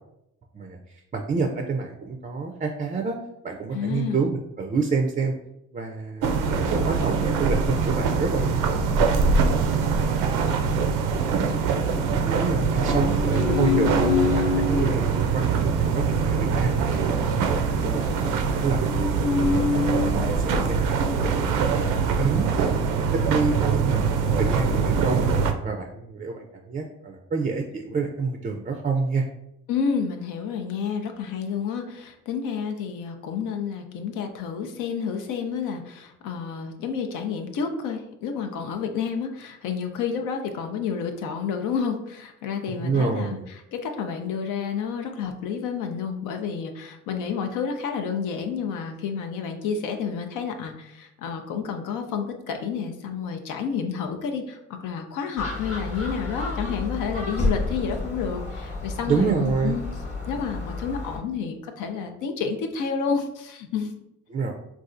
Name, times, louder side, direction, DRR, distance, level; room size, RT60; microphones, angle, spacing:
voice 1, 1.1-3.2 3.4-5.4 5.7-8.8 12.1-16.8 17.3-21.9 22.2-22.7 23.1-29.3 42.7-43.4 59.1-59.8 64.3-64.5, right 4 dB, 25° right, 3 dB, 0.3 m, -28 dB
voice 2, 3.7-4.2 29.7-43.4 43.7-59.8 60.3-63.9, left 6 dB, 85° left, 5 dB, 0.5 m, -30 dB
sound 1, 6.2-25.5, right 5 dB, 90° right, 0.5 m, -23 dB
sound 2, 10.8-12.0 12.5-14.9 15.5-20.6 21.4-22.6 22.9-23.0 23.4-24.4, left 5 dB, 50° left, 0.7 m, -29 dB
Gull seagull, 55.4-61.2, left 2 dB, 20° left, 1.0 m, -31 dB
4.0 x 2.3 x 2.5 m, 0.81 s
cardioid pair, 90°, 30 cm